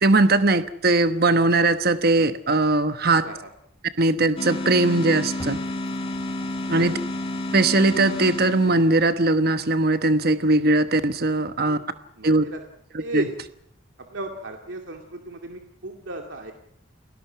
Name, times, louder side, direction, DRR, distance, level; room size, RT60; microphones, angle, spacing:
voice 1, 0.0-3.3 4.0-5.6 6.7-7.0 7.5-11.8 12.2-12.4 12.9-13.2, right 2 dB, 55° right, 10 dB, 1.2 m, -20 dB
sound 1, 4.4-9.1, left 1 dB, 30° left, 2.4 m, -30 dB
Fire, 5.4-8.2 9.0-9.1, left 1 dB, 10° left, 6.3 m, -45 dB
voice 2, 12.2-12.6 13.0-13.3 14.1-16.5, right 1 dB, 80° right, 3 dB, 2.4 m, -34 dB
29.5 x 18.5 x 5.7 m, 0.69 s
head